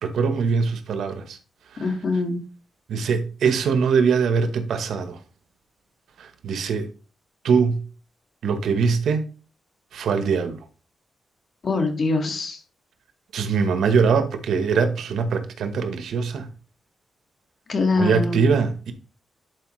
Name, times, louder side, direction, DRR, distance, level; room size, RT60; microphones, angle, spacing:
voice 1, 0.0-1.4 1.7-1.8 2.9-5.2 6.2-6.9 7.4-7.8 8.4-9.2 9.9-10.6 13.3-16.5 18.0-18.9, right 5 dB, 85° right, 1.1 m, -22 dB
voice 2, 1.8-2.4 11.6-12.6 17.7-18.4, left 3 dB, 50° left, 1.8 m, -23 dB
11.0 x 4.8 x 3.2 m
cardioid pair, 115°, 0 cm